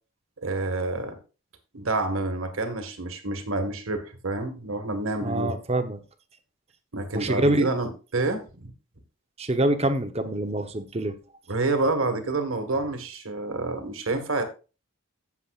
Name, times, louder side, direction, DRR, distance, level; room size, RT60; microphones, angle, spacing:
voice 1, 0.4-1.2 1.7-5.5 6.9-8.7 11.5-14.4, right 2 dB, 80° right, 7 dB, 1.7 m, -28 dB
voice 2, 5.2-6.0 7.1-7.7 9.4-11.1, right 1 dB, 30° right, 8 dB, 0.9 m, -25 dB
15.0 x 7.2 x 2.5 m, 0.32 s
head